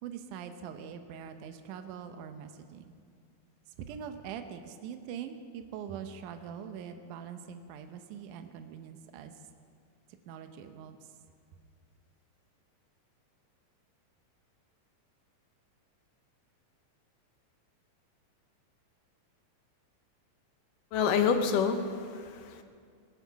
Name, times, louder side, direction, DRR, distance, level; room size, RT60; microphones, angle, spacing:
voice 1, 0.0-2.9 3.7-9.4 10.3-11.2, right 8 dB, 75° right, 7 dB, 2.3 m, -43 dB
voice 2, 20.9-22.6, left 6 dB, 75° left, 7 dB, 2.6 m, -28 dB
18.5 x 15.0 x 4.7 m, 2.1 s
omnidirectional pair, 3.8 m